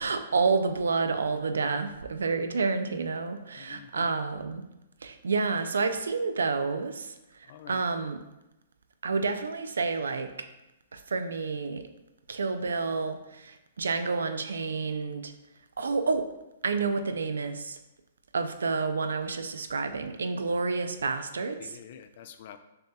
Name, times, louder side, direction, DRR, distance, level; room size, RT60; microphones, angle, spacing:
voice 1, 0.0-4.6 5.0-8.2 9.0-10.5 10.9-11.9 12.3-15.3 15.8-16.3 16.6-17.8 18.3-21.7, right 4 dB, 85° right, 8 dB, 0.4 m, -29 dB
voice 2, 3.6-4.1 7.5-7.8 21.6-22.6, left 9 dB, 55° left, 10 dB, 0.3 m, -47 dB
6.5 x 2.8 x 2.3 m, 0.93 s
hypercardioid pair, 125°, 0 cm